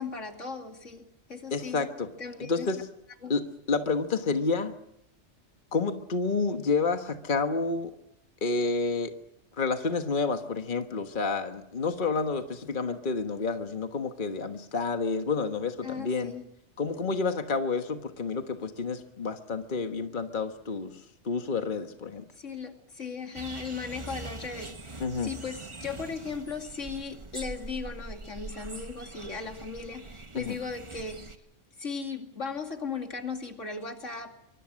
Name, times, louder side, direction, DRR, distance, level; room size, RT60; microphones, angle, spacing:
voice 1, 0.0-1.9 2.2-2.7 3.2-3.3 15.8-16.5 22.4-31.3 31.8-34.3, left 5 dB, 80° left, 4 dB, 2.9 m, -37 dB
voice 2, 1.5-2.1 2.4-2.8 3.3-4.7 5.7-7.9 8.4-9.1 9.6-16.3 16.8-22.2 25.0-25.3 30.3-30.6, left 4 dB, 45° left, 6 dB, 1.5 m, -29 dB
sound 1, 23.3-31.4, right 2 dB, 25° right, 1.3 m, -43 dB
24.5 x 24.5 x 6.4 m, 0.82 s
omnidirectional pair, 1.2 m